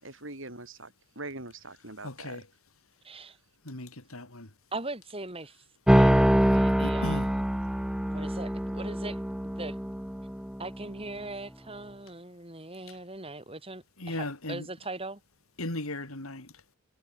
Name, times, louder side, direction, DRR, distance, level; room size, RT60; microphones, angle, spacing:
voice 1, 0.0-2.4, right 2 dB, 60° right, 5.8 m, -42 dB
voice 2, 2.0-2.4 3.7-4.5 6.8-7.2 14.0-14.7 15.6-16.5, left 1 dB, 70° left, 4.1 m, -36 dB
voice 3, 3.0-3.4 4.7-5.6 5.9-7.4 8.1-9.2 9.6-9.8 10.6-15.2, right 2 dB, 25° right, 7.8 m, -40 dB
sound 1, 5.9-10.8, equal, 5° right, 0.4 m, -25 dB
head